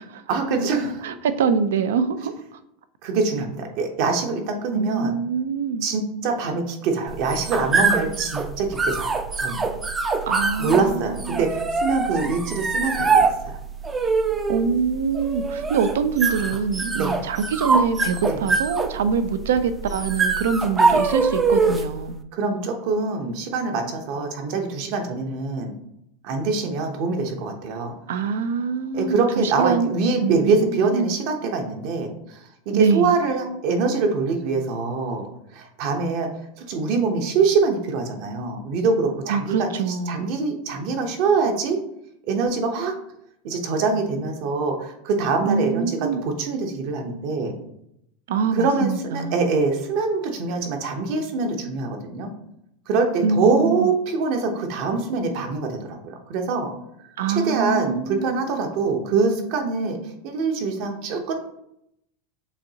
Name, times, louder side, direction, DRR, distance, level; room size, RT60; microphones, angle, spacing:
voice 1, 0.3-1.0 3.0-5.1 5.8-9.7 10.6-13.6 17.0-17.1 18.3-18.4 22.3-25.7 26.2-27.9 28.9-35.3 35.5-36.3 36.6-41.8 42.3-42.9 43.4-47.6 48.5-52.3 52.9-56.7 57.3-61.3, right 4 dB, 55° right, 4 dB, 0.9 m, -24 dB
voice 2, 1.0-2.6 4.7-5.9 10.3-11.5 14.5-22.2 28.1-29.9 30.2-31.1 32.7-33.1 39.3-40.3 45.4-46.2 48.3-49.4 53.2-53.9 57.2-58.3, right 5 dB, 90° right, 12 dB, 0.4 m, -24 dB
sound 1, 7.1-22.0, right 4 dB, 15° right, 0.4 m, -24 dB
6.9 x 2.7 x 2.8 m, 0.78 s
supercardioid pair, 140°, 0 cm